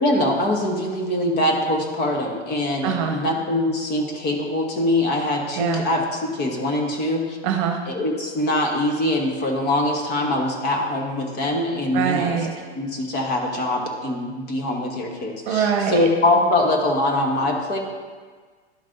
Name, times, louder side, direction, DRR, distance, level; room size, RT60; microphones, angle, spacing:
voice 1, 0.0-7.4 7.9-12.4 12.7-17.8, left 1 dB, 30° left, 1 dB, 1.3 m, -23 dB
voice 2, 2.8-3.2 5.6-5.8 7.4-7.8 11.9-12.5 15.5-16.1, right 7 dB, 40° right, 3 dB, 1.0 m, -23 dB
11.5 x 5.3 x 2.6 m, 1.5 s
hypercardioid pair, 115°, 34 cm